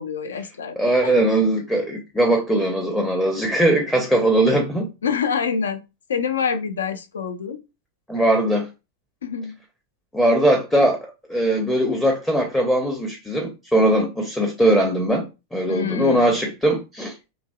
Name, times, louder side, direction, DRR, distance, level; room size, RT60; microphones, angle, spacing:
voice 1, 0.0-1.2 5.0-5.8 6.1-7.6 9.2-9.6 15.7-16.3, left 6 dB, 65° left, 0.4 m, -26 dB
voice 2, 0.8-4.9 8.1-8.7 10.1-15.2 15.5-17.1, right 1 dB, 5° left, 0.6 m, -20 dB
2.9 x 2.6 x 2.2 m
figure-of-eight pair, 90°, 0 cm